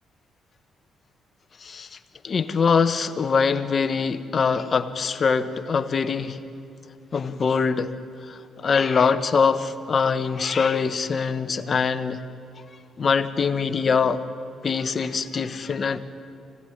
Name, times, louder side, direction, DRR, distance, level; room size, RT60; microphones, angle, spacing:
voice 1, 1.6-2.0 2.2-6.4 7.1-7.9 8.3-12.2 13.0-14.2 14.6-16.0, left 5 dB, 45° left, 10 dB, 1.2 m, -23 dB
24.5 x 17.5 x 10.0 m, 2.6 s
cardioid pair, 90°, 0 cm